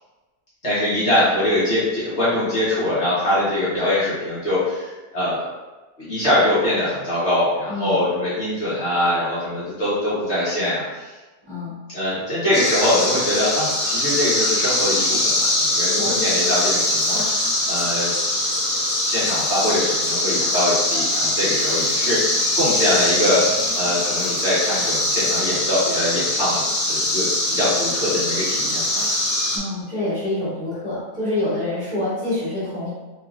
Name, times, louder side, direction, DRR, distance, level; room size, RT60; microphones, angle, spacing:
voice 1, 0.6-5.4 6.0-11.1 11.9-18.1 19.0-29.1, left 1 dB, 50° left, -11 dB, 1.2 m, -23 dB
voice 2, 7.7-8.0 11.5-11.7 16.0-16.2 29.5-32.9, left 2 dB, 25° right, -12 dB, 1.7 m, -26 dB
sound 1, 12.5-29.6, left 1 dB, 65° left, 1.3 m, -22 dB
3.6 x 3.0 x 2.4 m, 1.2 s
omnidirectional pair, 1.7 m